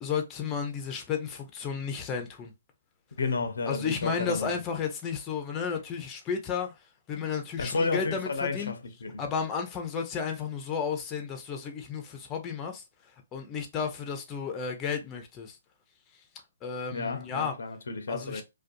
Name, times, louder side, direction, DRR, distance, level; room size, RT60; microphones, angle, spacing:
voice 1, 0.0-2.5 3.7-6.7 7.1-8.7 9.2-12.8 13.3-15.6 16.6-17.5 18.1-18.4, left 6 dB, 20° left, 0.5 m, -33 dB
voice 2, 3.2-4.5 7.6-9.2 16.9-18.4, left 4 dB, 80° left, 0.5 m, -31 dB
2.4 x 2.2 x 2.5 m
hypercardioid pair, 145°, 0 cm